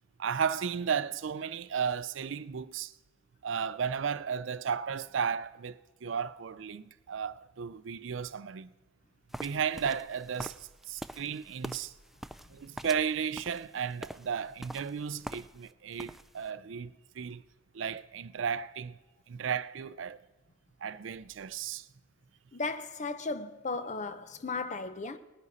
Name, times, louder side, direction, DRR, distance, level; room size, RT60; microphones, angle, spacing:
voice 1, 0.2-2.9 3.4-8.7 9.3-10.6 10.9-11.9 12.5-17.4 17.7-19.0 19.3-20.2 20.8-21.9, right 7 dB, 85° right, 0.5 m, -34 dB
sound 1, 9.3-15.7 16.0-16.5, equal, ahead, 0.3 m, -44 dB
voice 2, 22.5-25.2, left 3 dB, 40° left, 0.7 m, -35 dB
19.0 x 9.9 x 4.1 m
head